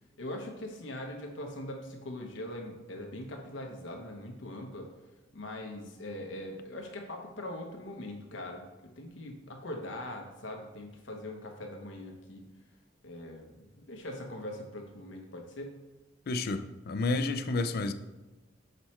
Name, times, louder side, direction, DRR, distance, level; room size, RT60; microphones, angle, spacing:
voice 1, 0.2-4.9 5.3-8.7 9.0-12.4 13.0-15.8, left 1 dB, 75° left, 0.9 m, -41 dB
voice 2, 16.3-17.9, left 3 dB, 55° left, 0.4 m, -30 dB
6.7 x 4.3 x 4.3 m
head